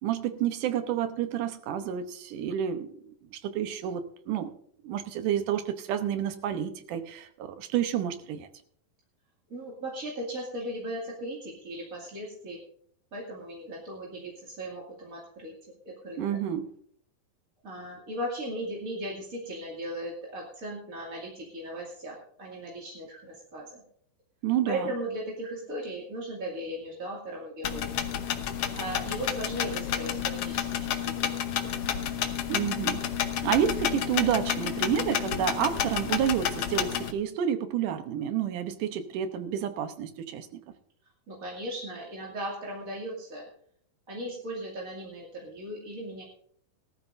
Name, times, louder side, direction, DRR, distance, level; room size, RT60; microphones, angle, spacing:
voice 1, 0.0-4.5 4.8-8.5 16.2-16.7 24.4-24.9 32.5-33.0 33.4-40.6, right 9 dB, 70° right, 9 dB, 2.3 m, -29 dB
voice 2, 9.5-12.6 13.1-15.5 15.8-16.2 17.6-23.8 24.6-28.0 28.7-31.8 41.3-43.5 44.1-46.2, right 1 dB, 25° right, -4 dB, 2.2 m, -37 dB
sound 1, 27.6-37.1, left 9 dB, 85° left, 1.3 m, -30 dB
19.0 x 12.5 x 2.6 m, 0.63 s
omnidirectional pair, 4.1 m